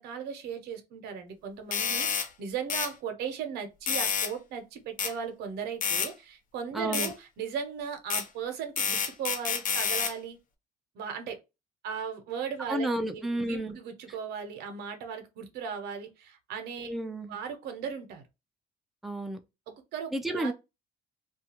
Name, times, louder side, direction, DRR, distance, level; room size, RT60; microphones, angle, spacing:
voice 1, 0.0-10.4 10.9-11.4 11.8-16.9 17.3-18.2 19.7-20.5, right 7 dB, 75° right, 0.8 m, -37 dB
sound 1, 1.7-2.3 2.7-2.9 3.9-4.3 5.0-5.1 5.8-6.1 6.9-7.1 8.1-8.3 8.8-10.1, left 6 dB, 55° left, 0.6 m, -29 dB
voice 2, 6.7-7.1 12.7-13.8 16.9-17.4 19.0-19.4 20.1-20.5, right 1 dB, ahead, 0.4 m, -31 dB
2.4 x 2.3 x 2.8 m
cardioid pair, 110°, 17 cm